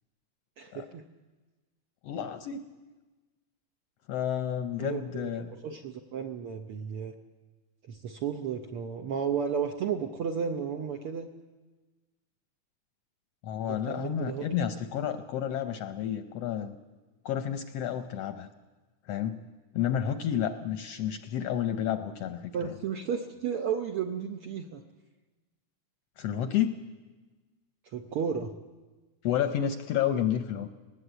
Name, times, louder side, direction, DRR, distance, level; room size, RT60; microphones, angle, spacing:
voice 1, 0.6-1.0 4.8-7.1 7.9-11.3 13.7-14.7 22.5-24.8 27.9-28.6, right 7 dB, 70° right, 4 dB, 1.4 m, -33 dB
voice 2, 2.0-2.7 4.1-5.6 13.4-16.8 17.2-18.5 19.1-19.4 19.7-22.7 26.2-26.9 29.2-30.7, left 9 dB, 70° left, 8 dB, 1.5 m, -30 dB
19.5 x 19.0 x 8.1 m, 1.3 s
omnidirectional pair, 3.5 m